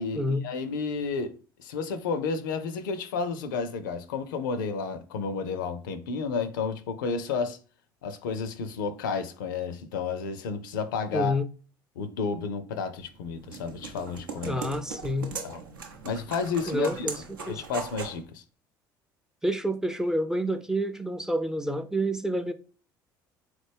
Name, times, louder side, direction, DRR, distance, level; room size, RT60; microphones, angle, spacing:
voice 1, 0.0-7.6 8.0-11.4 12.0-14.6 15.4-15.6 16.0-17.1 17.5-18.4, left 5 dB, 70° left, 0.4 m, -31 dB
voice 2, 11.1-11.5 14.5-15.3 16.7-17.6 19.4-22.5, equal, 5° right, 0.4 m, -28 dB
sound 1, 13.0-18.2, right 5 dB, 75° right, 0.6 m, -39 dB
3.8 x 3.2 x 3.3 m
figure-of-eight pair, 60°, 11 cm